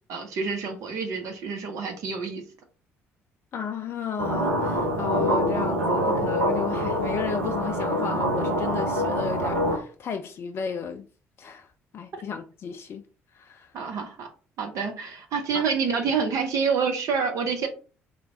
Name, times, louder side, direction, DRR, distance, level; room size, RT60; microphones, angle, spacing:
voice 1, 0.1-2.4 13.7-14.3 14.6-17.7, right 5 dB, 50° right, 0.8 m, -27 dB
voice 2, 3.5-11.1 11.4-11.7 11.9-13.0 13.3-13.7 15.5-15.6, left 6 dB, 40° left, 0.3 m, -33 dB
sound 1, 4.2-9.8, equal, 80° right, 0.5 m, -25 dB
3.2 x 2.2 x 3.8 m
figure-of-eight pair, 50°, 7 cm